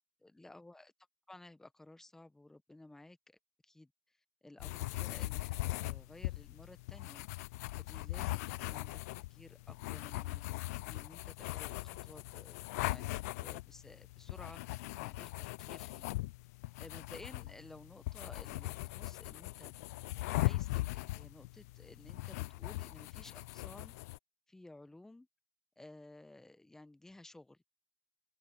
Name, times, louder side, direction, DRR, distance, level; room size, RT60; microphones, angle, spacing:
voice 1, 0.2-0.9 1.3-3.4 3.6-7.3 7.8-16.1 16.8-19.8 20.2-23.9 24.5-25.3 25.8-27.6, left 2 dB, 5° left, 1.0 m, -55 dB
sound 1, 4.6-24.2, left 19 dB, 75° left, 0.4 m, -40 dB
open air
supercardioid pair, 145°, 8 cm